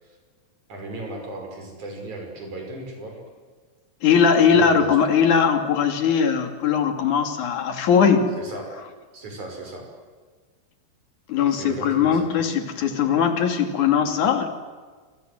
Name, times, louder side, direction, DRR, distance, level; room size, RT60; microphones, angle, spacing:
voice 1, 0.7-3.2 4.5-5.0 8.4-8.7 9.1-9.9 11.5-12.3, right 2 dB, 70° right, 2 dB, 7.2 m, -36 dB
voice 2, 4.0-8.3 11.3-14.5, left 7 dB, 70° left, 6 dB, 4.0 m, -20 dB
29.0 x 26.0 x 7.9 m, 1.5 s
omnidirectional pair, 3.6 m